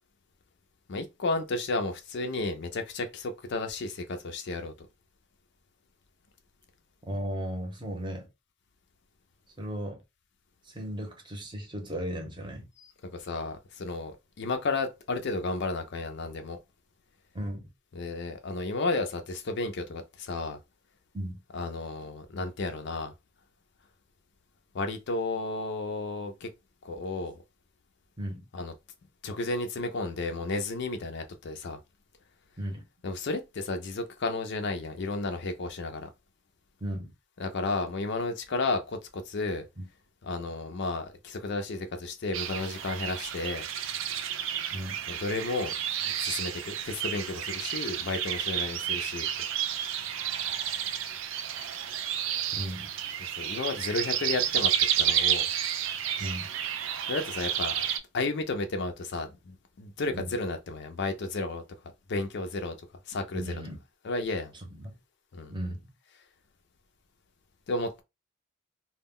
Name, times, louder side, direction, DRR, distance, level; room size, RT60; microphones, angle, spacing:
voice 1, 0.9-4.7 12.8-16.6 17.9-20.6 21.5-23.1 24.7-26.5 26.8-27.4 28.5-28.7 29.2-31.8 33.0-36.1 37.4-39.7 40.2-43.6 45.1-45.7 46.0-49.3 53.2-54.7 55.0-55.5 57.1-57.9 58.1-61.6 62.1-62.8 63.1-63.5 64.0-64.5 65.3-65.6 67.7-68.0, left 3 dB, 60° left, 0.5 m, -32 dB
voice 2, 7.1-8.3 9.6-10.0 10.7-12.7 17.3-17.7 21.1-21.4 28.2-28.5 32.6-32.8 36.8-37.1 39.8-39.9 44.7-45.0 52.5-52.9 56.2-56.5 60.1-60.3 63.3-63.8 64.7-64.9 65.5-65.9, equal, 25° right, 0.8 m, -35 dB
sound 1, 42.3-58.0, right 9 dB, 65° right, 0.4 m, -31 dB
2.2 x 2.1 x 3.6 m
head